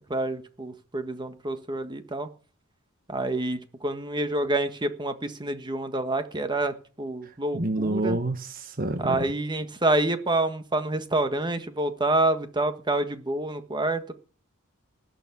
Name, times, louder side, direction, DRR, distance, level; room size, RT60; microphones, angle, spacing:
voice 1, 0.1-2.3 3.1-8.2 9.0-14.1, right 2 dB, 20° right, 1.4 m, -27 dB
voice 2, 7.5-9.3, right 2 dB, 40° right, 1.3 m, -28 dB
18.5 x 7.0 x 8.5 m
head